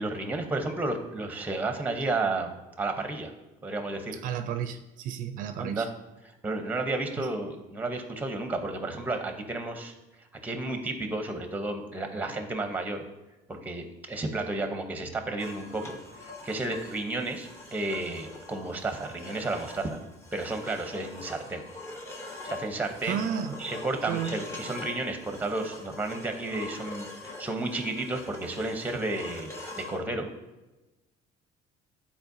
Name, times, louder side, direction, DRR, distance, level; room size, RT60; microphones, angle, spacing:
voice 1, 0.0-2.5 2.8-3.3 3.6-4.2 5.6-5.9 6.4-9.9 10.3-13.0 13.5-20.0 20.3-21.6 22.4-23.2 23.6-30.3, right 2 dB, 10° right, 6 dB, 0.8 m, -32 dB
voice 2, 4.2-5.9 7.2-7.3 23.0-23.6 24.1-24.5, right 8 dB, 60° right, 9 dB, 0.5 m, -32 dB
sound 1, 15.4-30.0, left 2 dB, 20° left, 1.0 m, -43 dB
12.0 x 4.3 x 2.7 m, 1.1 s
cardioid pair, 140°, 15 cm